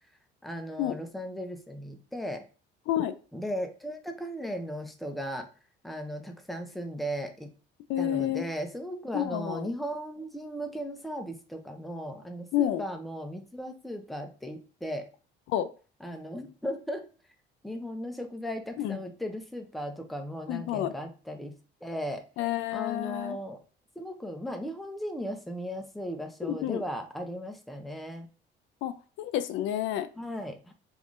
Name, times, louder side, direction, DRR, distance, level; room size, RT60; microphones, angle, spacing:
voice 1, 0.4-2.4 3.3-5.5 5.8-7.5 8.0-15.1 16.0-17.1 17.6-21.5 21.8-22.2 22.7-23.6 24.0-28.3 30.2-30.7, equal, ahead, 5 dB, 0.4 m, -36 dB
voice 2, 7.9-8.4 9.1-9.7 12.5-12.8 15.5-15.7 18.8-19.0 20.5-20.9 22.4-23.4 26.5-26.8 28.8-30.1, left 12 dB, 80° left, 12 dB, 0.4 m, -29 dB
3.6 x 3.0 x 2.5 m, 0.36 s
cardioid pair, 135°, 20 cm